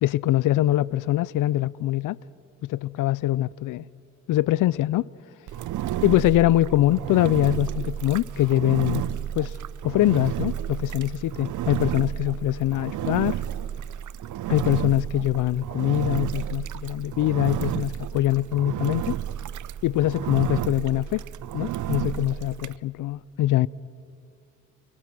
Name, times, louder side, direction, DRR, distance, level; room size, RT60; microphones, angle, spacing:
voice 1, 0.0-2.2 2.6-3.8 4.3-5.1 6.0-9.1 9.4-9.6 9.8-13.4 14.5-19.2 19.8-21.2 21.5-23.7, left 14 dB, 75° left, 0.5 m, -23 dB
Engine, 5.5-22.8, right 11 dB, 65° right, 0.6 m, -31 dB
29.0 x 22.5 x 6.2 m
cardioid pair, 65°, 32 cm